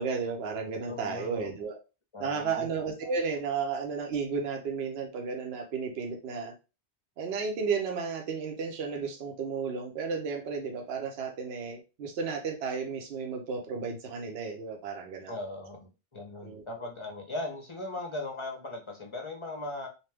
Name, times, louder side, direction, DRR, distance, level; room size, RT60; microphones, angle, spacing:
voice 1, 0.0-1.8 2.2-6.5 7.2-15.4 16.4-16.9, right 5 dB, 70° right, 3 dB, 0.9 m, -33 dB
voice 2, 0.9-1.5 2.1-2.7 15.3-19.9, left 2 dB, 35° left, 1 dB, 0.5 m, -38 dB
2.8 x 2.2 x 3.3 m, 0.30 s
omnidirectional pair, 1.1 m